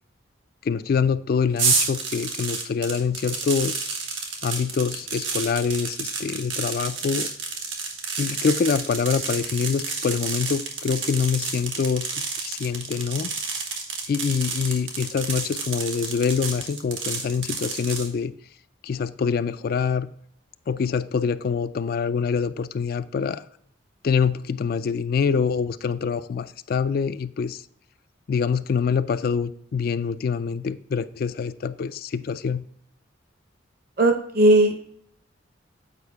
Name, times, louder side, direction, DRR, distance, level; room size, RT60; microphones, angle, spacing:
voice 1, 0.6-3.9 4.4-7.3 8.2-12.1 12.4-13.3 14.1-18.3 18.8-20.1 20.7-23.4 24.0-27.6 28.3-32.6, left 6 dB, 50° left, 13 dB, 0.3 m, -25 dB
sound 1, 1.6-18.1, right 4 dB, 80° right, 1.4 m, -30 dB
voice 2, 34.0-35.0, right 1 dB, 50° right, 5 dB, 0.8 m, -18 dB
8.2 x 4.9 x 3.5 m, 0.67 s
head